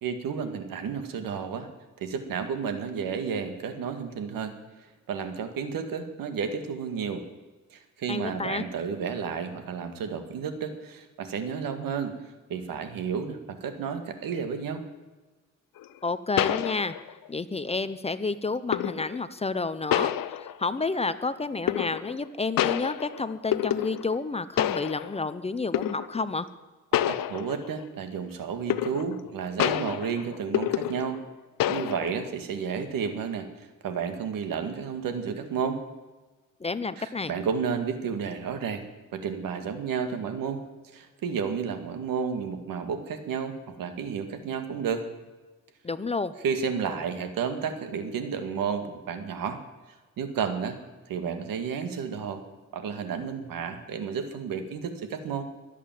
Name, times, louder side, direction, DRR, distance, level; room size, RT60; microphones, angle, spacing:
voice 1, 0.0-1.7 2.0-4.5 5.1-7.2 7.7-12.1 12.5-14.8 27.1-31.2 31.7-35.8 37.0-38.8 39.1-40.6 40.9-43.5 43.8-45.1 46.4-49.6 50.2-50.8 51.1-52.4 52.7-55.4, right 6 dB, 85° right, 8 dB, 1.9 m, -31 dB
voice 2, 8.1-8.6 16.0-16.9 17.3-20.1 20.6-26.5 36.6-37.3 45.8-46.3, left 3 dB, 20° left, 13 dB, 0.6 m, -30 dB
sound 1, 15.8-15.9 16.4-17.3 18.7-19.2 19.9-20.8 21.7-22.3 22.6-24.2 24.6-25.3 25.7-26.2 26.9-27.8 28.7-29.3 29.6-31.3 31.6-32.2, left 12 dB, 85° left, 0.7 m, -28 dB
22.0 x 8.5 x 7.5 m, 1.2 s
cardioid pair, 140°, 33 cm